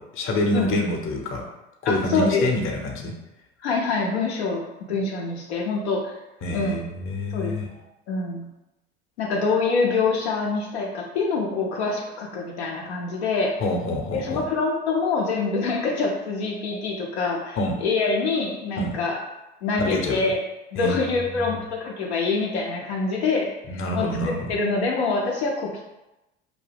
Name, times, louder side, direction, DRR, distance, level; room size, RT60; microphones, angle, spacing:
voice 1, 0.0-1.5 1.8-3.1 6.4-7.7 13.6-14.5 17.6-17.7 18.8-18.9 19.8-20.2 20.8-21.0 21.2-21.6 23.7-24.5, left 1 dB, 40° left, 2 dB, 0.7 m, -26 dB
voice 2, 0.5-0.8 1.8-2.4 3.6-6.1 6.5-6.8 7.3-7.5 8.1-8.5 9.2-13.5 14.1-19.2 19.6-20.4 20.7-25.8, left 4 dB, 90° left, -1 dB, 0.5 m, -25 dB
2.4 x 2.2 x 3.2 m, 0.96 s
hypercardioid pair, 70°, 32 cm